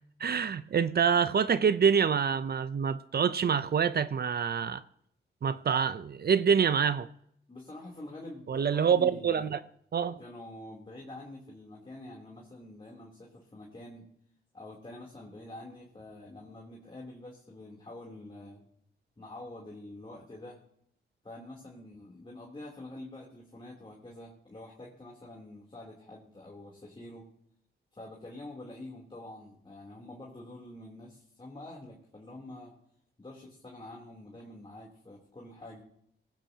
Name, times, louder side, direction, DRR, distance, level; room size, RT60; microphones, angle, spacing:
voice 1, 0.2-4.8 5.4-7.1 8.5-9.6 9.9-10.2, right 7 dB, 55° right, 0.7 m, -26 dB
voice 2, 7.5-9.5 10.2-14.1 14.5-18.6 19.2-20.6 21.2-27.3 27.9-32.7 33.2-35.8, left 1 dB, 25° left, 3.4 m, -46 dB
18.0 x 16.0 x 2.9 m
cardioid pair, 75°, 20 cm